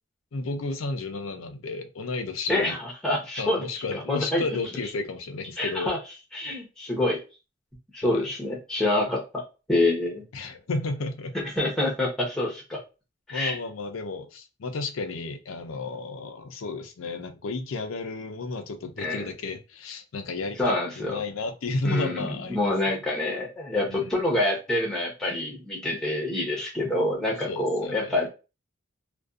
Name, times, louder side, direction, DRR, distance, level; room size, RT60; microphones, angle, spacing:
voice 1, 0.3-2.8 3.4-5.9 8.0-8.3 10.3-11.4 13.3-23.0 23.9-24.4 27.5-28.2, left 3 dB, 85° left, 0.5 m, -33 dB
voice 2, 3.0-3.6 3.9-4.4 5.6-6.0 6.3-7.2 7.9-9.4 9.7-10.2 11.6-12.8 13.3-13.6 19.0-19.3 20.6-21.1 21.8-28.3, left 1 dB, 5° left, 0.8 m, -26 dB
2.5 x 2.2 x 2.3 m
head